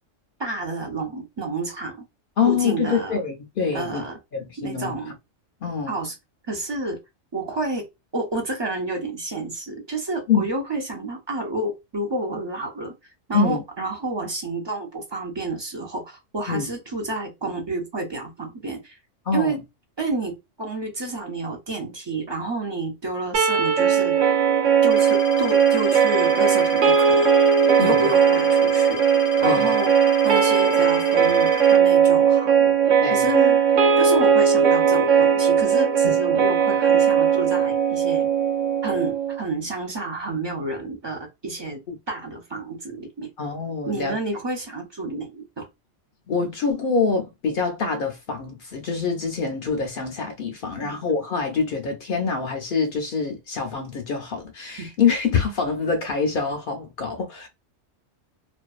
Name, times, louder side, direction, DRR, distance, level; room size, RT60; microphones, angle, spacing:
voice 1, 0.4-2.0 2.4-3.2 3.7-4.2 4.6-5.1 5.9-6.1 6.5-7.0 7.3-7.8 8.1-12.9 13.3-19.0 19.3-19.6 20.0-24.2 24.8-27.3 27.8-29.0 29.4-29.9 30.2-32.7 33.1-33.6 34.0-38.3 38.8-41.8 42.1-43.3 43.9-45.7 50.8-51.0 54.8-54.9, right 2 dB, 45° right, 0.3 m, -29 dB
voice 2, 2.4-5.0 5.6-6.0 10.3-10.4 13.3-13.6 16.5-16.7 19.3-19.6 27.8-28.1 29.4-29.7 33.0-33.3 36.0-36.1 41.9-42.0 43.4-44.2 46.3-57.5, left 5 dB, 60° left, 0.6 m, -25 dB
sound 1, 23.3-39.4, right 7 dB, 85° right, 1.1 m, -18 dB
sound 2, 24.9-31.8, left 6 dB, 80° left, 0.9 m, -34 dB
2.5 x 2.2 x 2.3 m
omnidirectional pair, 1.3 m